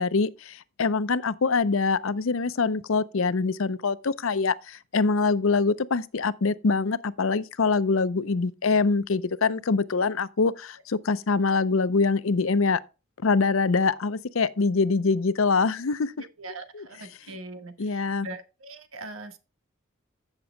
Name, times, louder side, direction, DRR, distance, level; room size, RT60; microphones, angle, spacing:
voice 1, 0.0-12.8 13.2-16.1 17.8-18.3, left 4 dB, 75° left, 0.6 m, -24 dB
voice 2, 16.4-19.4, right 2 dB, 80° right, 1.5 m, -41 dB
15.0 x 6.8 x 2.2 m
head